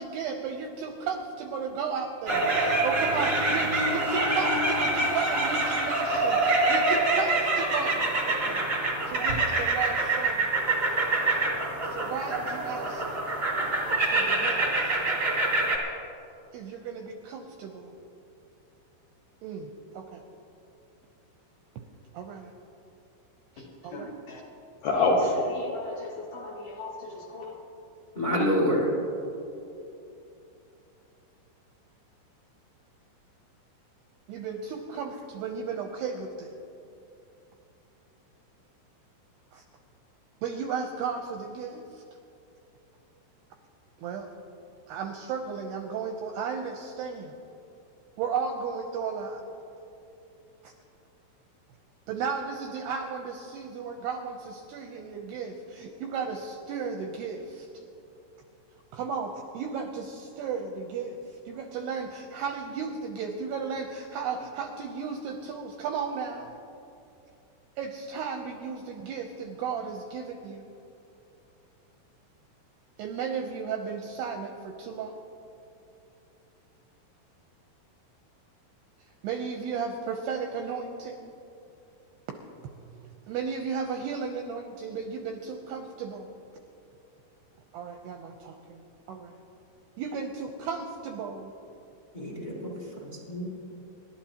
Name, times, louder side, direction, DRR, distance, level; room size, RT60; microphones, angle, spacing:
voice 1, 0.0-8.7 9.1-10.5 11.8-13.1 14.0-15.2 16.5-17.9 19.4-20.2 22.1-22.5 23.6-24.1 34.3-36.5 39.5-39.6 40.4-42.0 44.0-44.3 44.9-47.3 48.2-49.4 50.6-50.7 52.1-57.8 58.9-66.6 67.8-70.7 73.0-75.2 79.2-81.3 82.9-86.3 87.7-89.4 90.0-91.5, right 6 dB, 80° right, 3 dB, 2.4 m, -34 dB
sound 1, 2.3-15.8, right 2 dB, 55° right, 0.9 m, -26 dB
voice 2, 23.6-24.4 24.8-27.6, left 2 dB, 65° left, -1 dB, 2.4 m, -29 dB
voice 3, 28.1-28.9 92.1-93.5, equal, 90° left, -4 dB, 0.4 m, -28 dB
29.0 x 12.5 x 2.9 m, 2.7 s
omnidirectional pair, 5.6 m